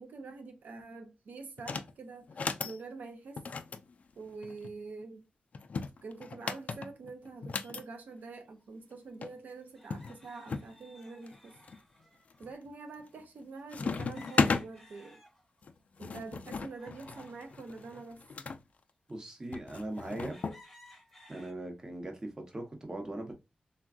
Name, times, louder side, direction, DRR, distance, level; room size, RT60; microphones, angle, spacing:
voice 1, 0.0-2.3 2.6-3.4 4.2-5.3 6.0-11.6 12.4-15.2 16.0-18.2, right 3 dB, 90° right, 0.6 m, -46 dB
sound 1, 1.6-1.9 2.3-2.8 3.4-4.7 5.5-7.8 8.9-9.0 9.2-9.3 9.9-10.7 11.3-11.8 12.3-12.7 13.0-13.4 13.7-14.7 15.6-18.6 19.5-20.6, left 5 dB, 55° left, 0.3 m, -35 dB
sound 2, 8.6-8.7 9.8-12.5 13.9-15.7 16.1-18.1 18.7-18.8 19.4-19.5 19.9-21.5, left 1 dB, 5° left, 0.8 m, -58 dB
voice 2, 19.1-20.4 21.3-23.3, right 1 dB, 25° right, 0.8 m, -40 dB
3.4 x 2.2 x 2.4 m
wide cardioid pair, 115°, 3 cm